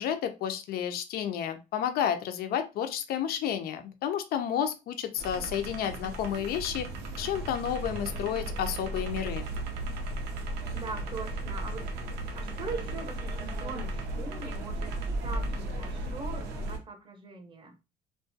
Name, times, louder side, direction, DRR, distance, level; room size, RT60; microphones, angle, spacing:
voice 1, 0.0-6.9 7.2-9.5, left 9 dB, 65° left, 0.4 m, -31 dB
sound 1, 5.2-16.8, right 1 dB, 80° right, 0.6 m, -35 dB
voice 2, 7.0-7.3 10.7-11.8 12.3-14.9 15.2-17.8, right 3 dB, 30° right, 0.6 m, -41 dB
2.4 x 2.2 x 2.5 m
cardioid pair, 110°, 17 cm